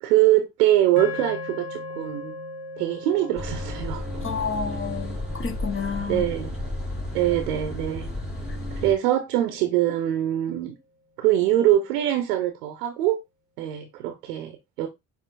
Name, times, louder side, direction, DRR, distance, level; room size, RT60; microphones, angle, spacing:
voice 1, 0.0-2.3 2.8-4.2 6.1-6.5 7.1-8.1 8.8-10.7 11.2-13.2 13.6-14.9, right 13 dB, 80° right, 0.8 m, -23 dB
sound 1, 1.0-9.3, left 2 dB, 55° left, 1.5 m, -40 dB
sound 2, 3.4-8.9, left 1 dB, ahead, 3.2 m, -32 dB
voice 2, 4.2-6.2 8.5-8.6, left 6 dB, 25° left, 1.2 m, -30 dB
6.9 x 2.7 x 2.5 m
hypercardioid pair, 50°, 46 cm